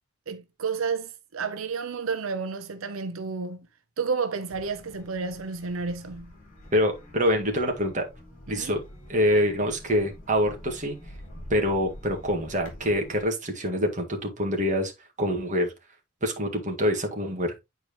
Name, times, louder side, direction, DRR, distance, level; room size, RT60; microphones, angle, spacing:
voice 1, 0.3-3.7 4.0-6.3 8.5-8.7, right 5 dB, 90° right, 0.6 m, -31 dB
sound 1, 4.5-13.2, left 1 dB, 40° left, 3.0 m, -46 dB
voice 2, 6.7-8.1 8.5-8.8 9.1-11.0 11.5-14.9 15.2-15.7 16.2-17.5, equal, 40° right, 1.7 m, -25 dB
8.8 x 4.6 x 3.0 m
head